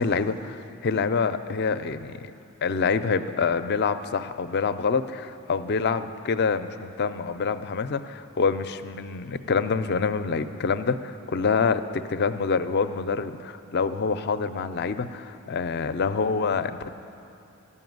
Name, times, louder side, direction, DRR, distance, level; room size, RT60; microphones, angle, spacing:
voice 1, 0.0-2.3 2.6-16.9, left 5 dB, 50° left, 11 dB, 0.4 m, -26 dB
13.5 x 5.6 x 9.3 m, 2.8 s
head